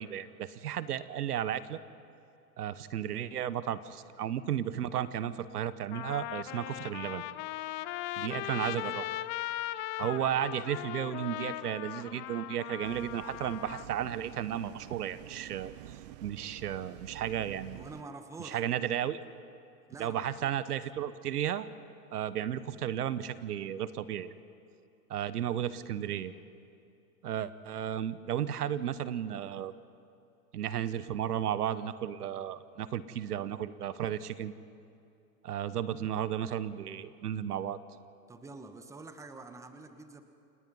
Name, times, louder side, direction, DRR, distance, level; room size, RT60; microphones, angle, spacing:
voice 1, 0.0-1.8 2.6-7.2 8.2-9.0 10.0-15.7 16.2-17.8 18.4-19.2 20.0-21.7 22.1-24.3 25.1-26.3 27.2-29.7 30.5-34.5 35.4-37.8, right 10 dB, 75° right, 15 dB, 1.2 m, -34 dB
Trumpet, 5.2-5.3 5.9-13.9, left 15 dB, 25° left, 0.6 m, -38 dB
voice 2, 8.2-9.1 17.7-18.6 19.9-20.5 38.3-40.2, right 3 dB, 5° right, 8 dB, 1.1 m, -48 dB
sound 1, 12.8-18.0, right 15 dB, 30° right, 0.4 m, -49 dB
29.0 x 19.5 x 5.5 m, 2.5 s
hypercardioid pair, 130°, 47 cm